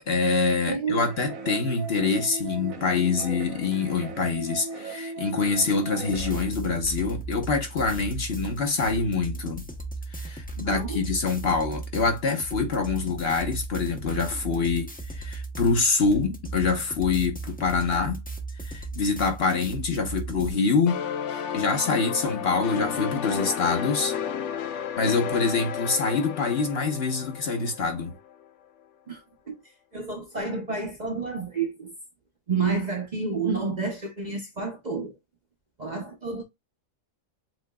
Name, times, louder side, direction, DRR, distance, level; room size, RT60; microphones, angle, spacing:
voice 1, 0.1-9.7 10.1-18.2 18.6-21.0 21.3-24.1 25.0-28.1, left 4 dB, 50° left, 1.2 m, -25 dB
voice 2, 0.7-1.1 10.6-11.0 29.1-29.5 29.9-31.9 32.5-35.1 35.8-36.4, right 4 dB, 40° right, 0.8 m, -30 dB
sound 1, 1.0-6.4, right 4 dB, 80° right, 1.4 m, -37 dB
sound 2, 6.1-20.5, right 3 dB, 10° left, 0.6 m, -36 dB
sound 3, 20.9-28.3, left 8 dB, 65° left, 0.9 m, -32 dB
7.6 x 2.8 x 2.2 m
omnidirectional pair, 1.4 m